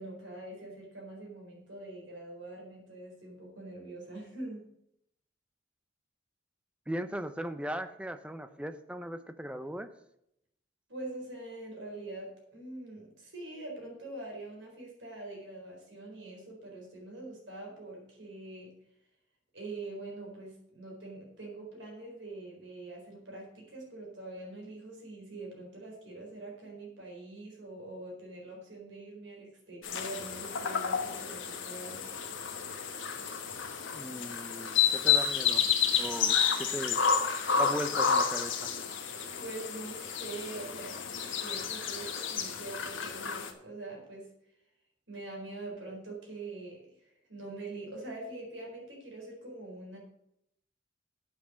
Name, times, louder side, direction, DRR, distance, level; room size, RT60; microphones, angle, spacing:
voice 1, 0.0-4.6 10.9-18.7 19.5-32.0 39.2-44.3 45.1-50.0, right 2 dB, 70° right, -1 dB, 4.3 m, -44 dB
voice 2, 6.9-9.9 33.9-35.6 35.9-37.0 37.5-38.7, right 1 dB, 5° right, 10 dB, 0.6 m, -38 dB
sound 1, 29.8-43.5, left 7 dB, 90° left, 1.3 m, -30 dB
8.7 x 5.9 x 7.6 m, 0.76 s
head